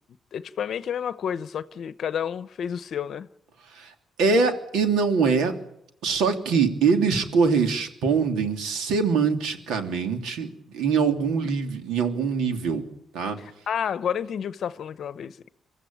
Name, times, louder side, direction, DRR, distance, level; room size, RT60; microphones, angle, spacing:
voice 1, 0.3-3.3 13.4-15.5, left 8 dB, 60° left, 0.8 m, -30 dB
voice 2, 4.2-5.5 6.0-10.5 10.7-12.8 13.1-13.4, right 5 dB, 85° right, 3.0 m, -23 dB
24.5 x 14.5 x 8.8 m
cardioid pair, 90°, 0 cm